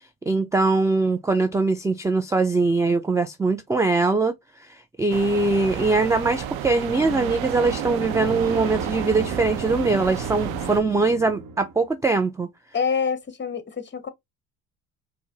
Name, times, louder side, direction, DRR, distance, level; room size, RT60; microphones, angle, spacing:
voice 1, 0.3-4.3 5.0-12.5, right 3 dB, 10° right, 0.3 m, -22 dB
sound 1, 5.1-10.8, right 10 dB, 70° right, 0.8 m, -32 dB
sound 2, 6.9-11.9, right 3 dB, 45° right, 1.0 m, -35 dB
voice 2, 12.7-14.1, left 6 dB, 25° left, 0.9 m, -26 dB
4.5 x 2.2 x 2.8 m
hypercardioid pair, 70°, 47 cm